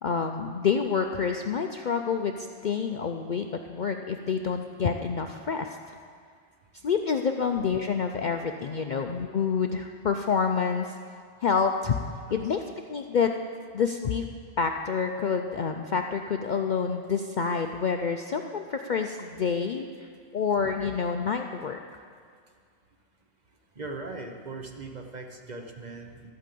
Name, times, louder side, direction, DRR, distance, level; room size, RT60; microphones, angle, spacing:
voice 1, 0.0-5.8 6.8-10.9 11.4-12.0 12.3-12.6 12.9-13.3 13.7-14.3 14.6-21.8, left 6 dB, 55° left, 5 dB, 0.6 m, -28 dB
voice 2, 23.8-26.3, right 3 dB, 40° right, 3 dB, 1.1 m, -39 dB
13.0 x 8.7 x 7.5 m, 2.1 s
omnidirectional pair, 1.2 m